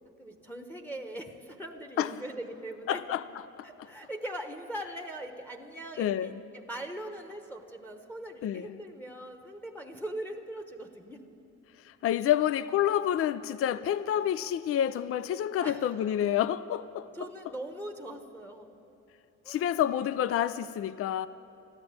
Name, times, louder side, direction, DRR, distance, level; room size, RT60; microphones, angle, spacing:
voice 1, 0.2-3.0 3.6-11.2 15.6-16.0 17.1-18.7 19.4-19.7, right 1 dB, 5° left, 1.1 m, -41 dB
voice 2, 2.9-3.2 3.6-3.7 6.0-6.4 8.4-8.8 11.8-17.1 19.5-21.3, left 10 dB, 50° left, 0.4 m, -28 dB
13.0 x 12.5 x 8.7 m
cardioid pair, 90°, 30 cm